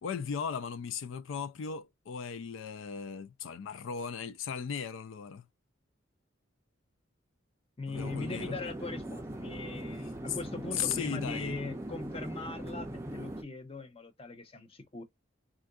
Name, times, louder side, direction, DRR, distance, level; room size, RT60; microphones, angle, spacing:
voice 1, 0.0-5.5 7.9-8.6 10.3-10.4 10.7-11.6, left 6 dB, 80° left, 0.4 m, -37 dB
voice 2, 7.8-15.0, left 3 dB, 30° left, 0.7 m, -40 dB
sound 1, 7.9-13.4, right 1 dB, 15° right, 0.5 m, -40 dB
3.6 x 2.5 x 2.3 m
head